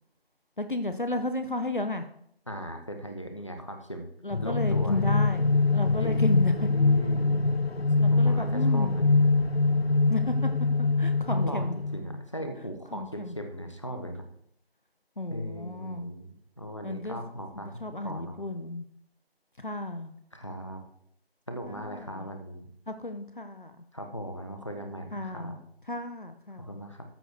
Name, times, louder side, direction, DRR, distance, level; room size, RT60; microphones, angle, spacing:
voice 1, 0.6-2.1 4.2-6.7 8.0-9.1 10.1-10.5 10.8-11.8 12.9-13.3 15.2-16.1 16.8-17.2 17.6-18.8 19.6-20.1 21.7-22.3 22.9-23.8 25.1-25.6 25.9-26.7, left 2 dB, 50° left, 8 dB, 1.0 m, -33 dB
voice 2, 2.5-4.1 4.4-5.0 6.0-7.4 8.1-9.5 11.3-14.3 15.3-18.4 20.3-20.8 21.5-22.7 23.9-25.6 26.6-27.0, equal, 30° left, 5 dB, 1.1 m, -38 dB
sound 1, 4.3-12.2, left 3 dB, 75° left, 0.8 m, -24 dB
13.5 x 6.9 x 4.6 m, 0.68 s
figure-of-eight pair, 175°, 31 cm